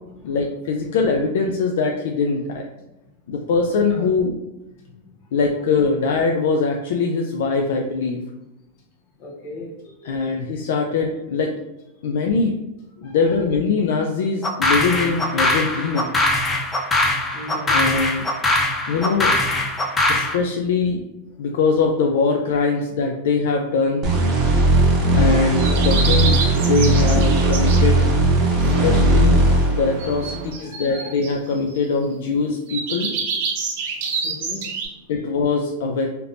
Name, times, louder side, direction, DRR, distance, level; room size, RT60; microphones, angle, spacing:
voice 1, 0.2-2.6 3.3-4.3 5.3-8.2 10.0-11.6 12.0-12.6 13.0-16.1 17.7-18.3 18.9-19.4 20.1-21.0 21.4-24.1 25.2-28.1 28.6-33.1 35.1-36.1, left 4 dB, 75° left, 2 dB, 0.3 m, -22 dB
voice 2, 9.2-10.4 13.0-13.3 17.3-17.8 19.8-20.0 27.6-27.7 30.5-31.1 32.3-32.8 34.0-35.1, left 2 dB, 50° left, -1 dB, 1.0 m, -39 dB
sound 1, 14.4-20.4, left 2 dB, 15° left, 0.4 m, -21 dB
sound 2, 24.0-30.5, right 2 dB, 30° right, 0.8 m, -17 dB
sound 3, 25.6-27.9 30.0-31.8 32.7-34.9, right 5 dB, 65° right, 0.8 m, -27 dB
3.3 x 2.8 x 2.5 m, 0.96 s
supercardioid pair, 140°, 0 cm